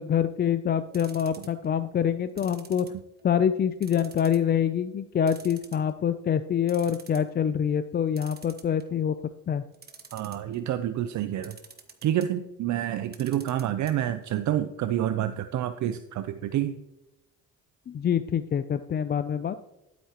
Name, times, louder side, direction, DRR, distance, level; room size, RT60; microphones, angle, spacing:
voice 1, 0.0-2.9 3.2-9.1 9.5-9.6 17.9-19.6, left 8 dB, 30° left, 11 dB, 0.4 m, -26 dB
sound 1, 0.9-1.7 2.4-3.3 3.8-4.5 4.8-4.9 5.3-6.1 6.4-6.5 6.7-7.3 8.2-9.0 9.7-10.6 11.4-12.3 13.0-13.9 14.2-14.3 14.6-14.7, right 5 dB, 30° right, 1.2 m, -48 dB
voice 2, 10.1-11.6 12.0-16.8, right 11 dB, 60° right, 11 dB, 0.6 m, -28 dB
12.5 x 8.3 x 3.0 m, 0.93 s
cardioid pair, 105°, 33 cm